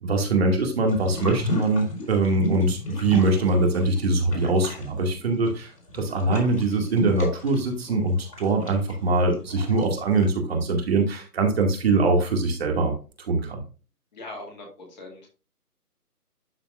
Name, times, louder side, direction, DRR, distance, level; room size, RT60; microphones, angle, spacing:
voice 1, 0.0-12.9 13.3-13.6, right 2 dB, 40° right, 2 dB, 2.2 m, -23 dB
sound 1, 0.9-4.0 4.3-10.2, left 2 dB, 85° left, 4.2 m, -34 dB
voice 2, 14.1-15.3, left 2 dB, 25° left, 0 dB, 2.2 m, -40 dB
12.0 x 4.3 x 2.5 m, 0.33 s
hypercardioid pair, 160°, 47 cm